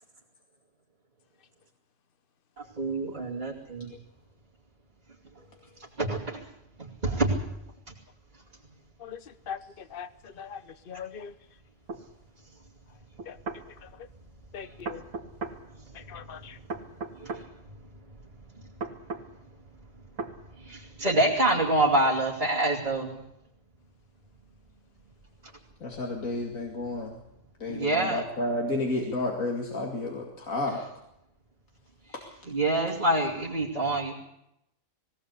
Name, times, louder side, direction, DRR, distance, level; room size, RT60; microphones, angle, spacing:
voice 1, 2.8-3.9 6.0-6.4 6.8-7.4 17.2-17.4 20.6-23.3 27.7-28.2 32.5-34.1, right 1 dB, 35° right, -6 dB, 2.9 m, -26 dB
voice 2, 9.0-10.6 10.9-11.3 13.3-13.4 13.8-13.9 14.5-15.0 15.9-16.6, left 7 dB, 45° left, 12 dB, 1.1 m, -41 dB
sound 1, 11.9-12.0 13.2-13.6 14.8-15.6 16.7-17.5 18.8-19.3 20.2-20.4, right 3 dB, 75° right, 2.4 m, -35 dB
voice 3, 25.8-27.1 27.6-30.8, left 2 dB, 80° left, 0 dB, 2.7 m, -31 dB
20.5 x 17.5 x 8.3 m, 0.83 s
omnidirectional pair, 1.4 m